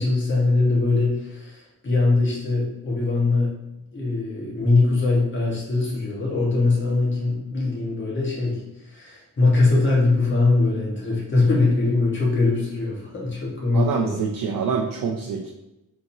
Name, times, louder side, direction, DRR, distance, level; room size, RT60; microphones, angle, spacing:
voice 1, 0.0-3.5 3.9-14.2, left 3 dB, 35° left, -4 dB, 1.4 m, -22 dB
voice 2, 13.7-15.5, right 6 dB, 70° right, 0 dB, 0.5 m, -25 dB
4.4 x 3.8 x 2.7 m, 0.92 s
wide cardioid pair, 140°, 35 cm